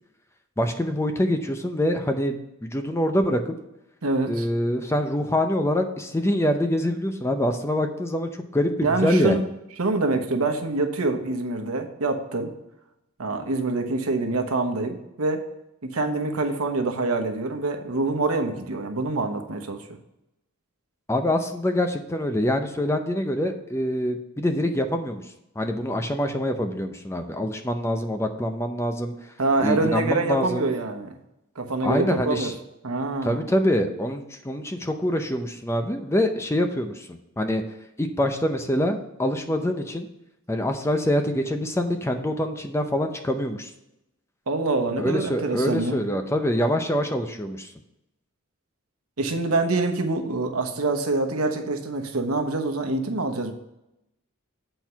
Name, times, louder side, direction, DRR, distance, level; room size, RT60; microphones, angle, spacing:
voice 1, 0.6-3.5 4.3-9.4 21.1-25.2 25.6-29.1 29.6-30.7 31.8-32.5 33.2-37.6 38.0-40.1 40.5-43.7 45.0-47.7, equal, 10° left, 6 dB, 0.5 m, -25 dB
voice 2, 4.0-4.5 8.8-9.4 9.8-12.5 13.2-15.5 15.8-19.9 29.4-31.1 31.5-32.5 32.8-33.4 44.5-46.0 49.2-53.5, right 3 dB, 80° right, 5 dB, 1.1 m, -25 dB
8.0 x 4.5 x 5.6 m, 0.87 s
head